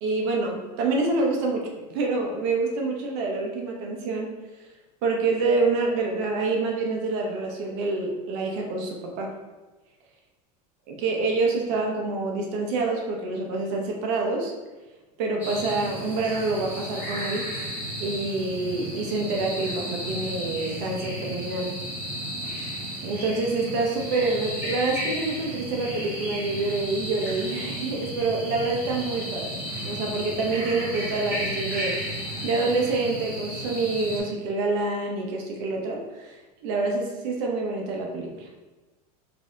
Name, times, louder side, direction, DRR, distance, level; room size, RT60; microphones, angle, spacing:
voice 1, 0.0-4.3 5.0-9.3 11.0-14.5 15.2-17.5 18.0-21.7 23.0-29.5 29.8-32.2 32.4-38.5, right 3 dB, 45° right, 0 dB, 0.7 m, -27 dB
sound 1, 15.4-34.2, equal, 10° right, 0.9 m, -33 dB
4.2 x 2.8 x 3.6 m, 1.2 s
supercardioid pair, 175°, 19 cm